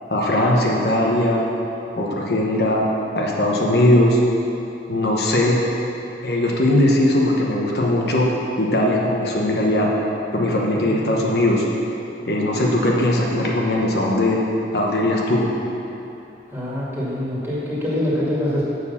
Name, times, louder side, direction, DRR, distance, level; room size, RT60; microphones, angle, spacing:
voice 1, 0.1-1.4 2.0-2.8 3.1-4.2 4.9-5.6 6.2-8.3 8.6-9.9 10.3-11.7 12.3-14.4 14.7-15.4, left 1 dB, 60° left, -2 dB, 1.1 m, -19 dB
voice 2, 10.7-11.3 16.5-18.6, left 1 dB, 15° right, -8 dB, 2.1 m, -25 dB
7.2 x 6.4 x 7.1 m, 2.9 s
head